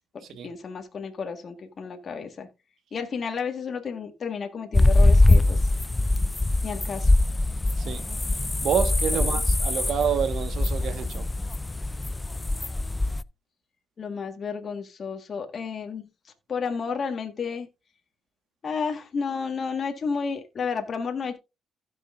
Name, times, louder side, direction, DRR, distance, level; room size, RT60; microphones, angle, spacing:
voice 1, 0.4-2.5 2.9-5.7 6.6-7.1 9.2-9.4 14.0-16.0 16.5-17.7 18.6-21.4, left 5 dB, 45° left, 1.6 m, -32 dB
sound 1, 4.7-13.2, left 2 dB, 15° left, 0.4 m, -22 dB
voice 2, 8.3-11.3, right 8 dB, 70° right, 1.5 m, -28 dB
16.0 x 6.3 x 2.5 m
cardioid pair, 90°, 0 cm